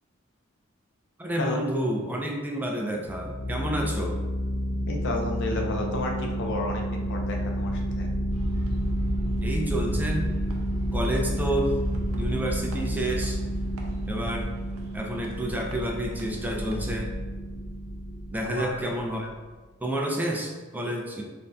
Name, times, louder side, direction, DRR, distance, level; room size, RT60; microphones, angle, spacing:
voice 1, 1.2-4.2 9.4-10.3 10.9-11.8 12.1-13.4 14.1-14.5 14.9-17.1 18.3-19.3 19.8-21.2, right 1 dB, 10° right, 0 dB, 0.3 m, -29 dB
sound 1, 3.0-19.3, equal, 85° left, 1.0 m, -30 dB
voice 2, 4.9-8.1 18.4-18.9, left 2 dB, 60° left, 1 dB, 0.5 m, -32 dB
sound 2, 8.3-17.0, equal, 80° right, 0.5 m, -40 dB
3.3 x 2.5 x 2.2 m, 1.3 s
head